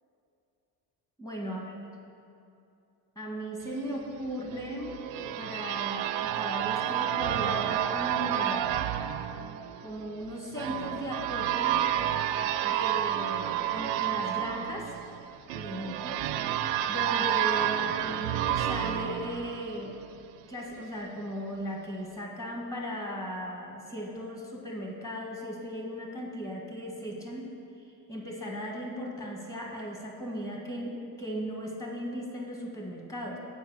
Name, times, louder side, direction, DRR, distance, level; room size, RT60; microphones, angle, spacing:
voice 1, 1.2-1.9 3.1-8.7 9.8-11.8 12.6-14.9 15.5-16.3 16.9-19.9 20.5-27.5 27.8-33.4, equal, 5° left, -1 dB, 1.6 m, -37 dB
sound 1, 4.5-20.2, right 11 dB, 80° right, 0.5 m, -30 dB
8.0 x 4.7 x 7.1 m, 2.7 s
cardioid pair, 100°, 44 cm